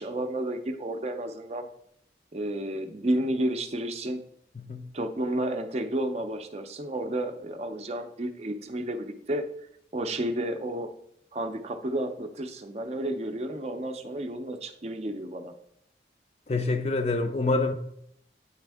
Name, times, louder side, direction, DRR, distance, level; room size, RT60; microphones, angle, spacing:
voice 1, 0.0-1.7 2.3-4.2 4.9-9.4 9.9-10.9 11.3-15.5, right 1 dB, 35° right, 0.5 m, -31 dB
voice 2, 4.6-4.9 16.5-17.7, left 3 dB, 35° left, 0.4 m, -26 dB
8.8 x 3.4 x 3.4 m
head